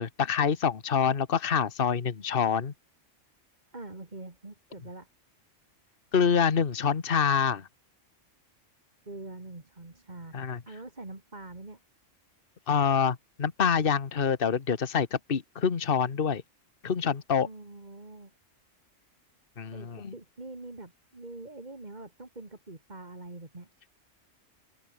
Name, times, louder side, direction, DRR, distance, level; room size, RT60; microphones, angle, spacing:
voice 1, 0.0-2.7 6.1-7.7 10.3-10.6 12.7-16.4 16.8-17.5 19.6-20.1, left 6 dB, 45° left, 1.5 m, -26 dB
voice 2, 3.7-5.1 9.0-11.8 17.4-18.3 19.7-23.7, right 2 dB, 35° right, 3.0 m, -44 dB
omnidirectional pair, 1.3 m